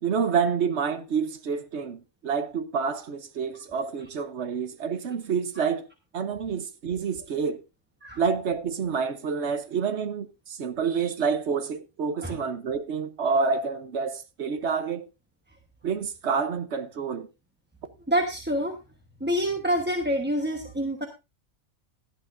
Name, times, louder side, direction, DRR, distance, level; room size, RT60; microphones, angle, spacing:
voice 1, 0.0-5.9 6.1-7.6 8.2-15.0 15.8-17.3, right 6 dB, 55° right, 1.1 m, -28 dB
voice 2, 18.1-18.8 19.2-21.1, equal, 10° right, 1.0 m, -27 dB
17.0 x 11.0 x 2.6 m
omnidirectional pair, 1.4 m